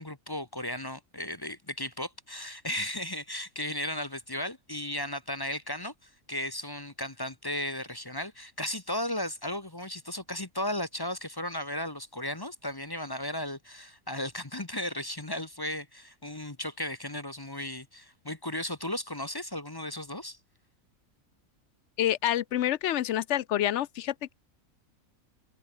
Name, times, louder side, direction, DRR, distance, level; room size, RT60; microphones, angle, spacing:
voice 1, 0.0-20.4, left 1 dB, 20° left, 1.0 m, -35 dB
voice 2, 22.0-24.3, left 12 dB, 65° left, 0.8 m, -28 dB
omnidirectional pair, 1.4 m